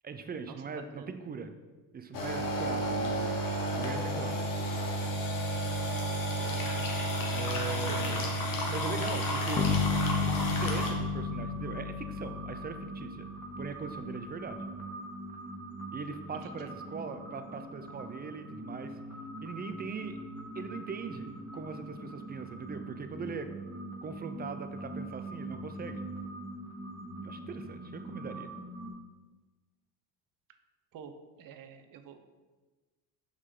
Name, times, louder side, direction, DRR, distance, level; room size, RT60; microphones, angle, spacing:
voice 1, 0.0-1.5 1.9-3.4 3.7-4.5 7.3-9.7 10.2-13.3 13.6-14.6 15.9-19.0 19.4-20.3 20.5-23.5 24.0-26.1 27.2-28.5, right 5 dB, 25° right, 9 dB, 0.5 m, -40 dB
sound 1, 2.1-10.9, equal, 55° left, 1.4 m, -31 dB
voice 2, 6.4-7.0 7.7-8.3 16.4-16.7 30.9-32.2, right 7 dB, 55° right, 8 dB, 0.7 m, -47 dB
sound 2, 9.5-13.5, left 5 dB, 25° left, 0.6 m, -32 dB
sound 3, 10.7-28.9, right 1 dB, 5° left, 1.3 m, -43 dB
6.4 x 4.9 x 3.7 m, 1.3 s
cardioid pair, 95°, 40 cm